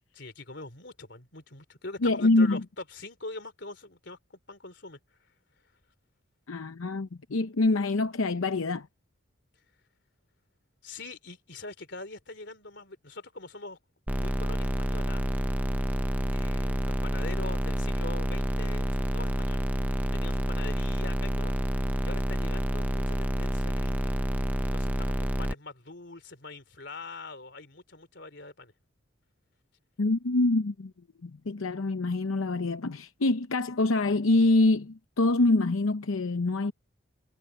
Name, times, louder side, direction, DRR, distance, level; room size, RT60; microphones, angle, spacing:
voice 1, 0.1-5.3 10.8-13.8 14.2-15.2 16.2-19.7 20.1-24.2 24.6-28.7, left 3 dB, 55° left, 3.8 m, -43 dB
voice 2, 2.0-2.6 6.5-8.9 30.0-30.9 31.2-36.7, left 2 dB, 90° left, 0.8 m, -25 dB
sound 1, 14.1-25.5, equal, 10° right, 0.6 m, -28 dB
head